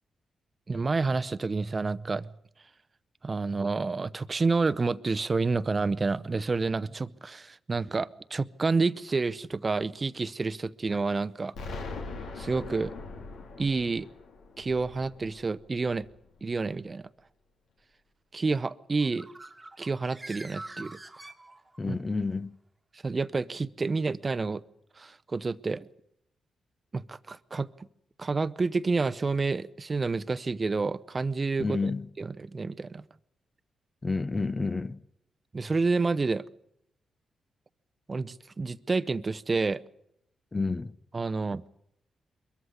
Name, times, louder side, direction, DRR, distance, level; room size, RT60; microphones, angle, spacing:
voice 1, 0.7-2.3 3.2-11.5 12.4-12.9 13.6-14.1 14.6-16.1 16.4-17.1 18.3-19.3 19.8-20.9 21.9-22.0 23.0-24.6 25.0-25.9 26.9-27.7 28.2-31.9 32.2-33.0 35.5-36.4 38.1-39.8 41.1-41.6, right 4 dB, 35° right, 0.8 m, -29 dB
Explosion, 11.5-16.4, left 3 dB, 85° left, 3.4 m, -41 dB
Bird, 18.9-22.0, right 2 dB, 20° right, 1.5 m, -45 dB
voice 2, 21.8-22.6 31.6-32.1 34.0-35.0 40.5-40.9, left 3 dB, 30° left, 0.8 m, -30 dB
22.0 x 14.5 x 9.7 m
cardioid pair, 75°, 0 cm